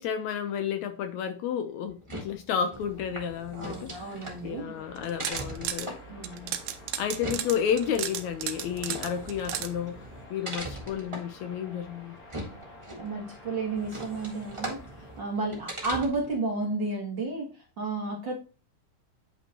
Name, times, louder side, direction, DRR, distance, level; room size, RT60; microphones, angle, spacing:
voice 1, 0.0-6.0 7.0-10.0 10.3-12.2, left 8 dB, 75° left, 1.9 m, -31 dB
sound 1, 1.9-16.4, right 1 dB, 25° right, 0.6 m, -41 dB
voice 2, 3.6-4.8 6.1-6.5 12.9-17.5 17.8-18.3, right 3 dB, 45° right, 1.7 m, -32 dB
sound 2, 4.3-15.8, left 3 dB, 35° left, 1.9 m, -50 dB
sound 3, 5.0-5.9 6.2-9.7, right 11 dB, 85° right, 2.1 m, -34 dB
9.0 x 5.5 x 2.9 m
omnidirectional pair, 3.6 m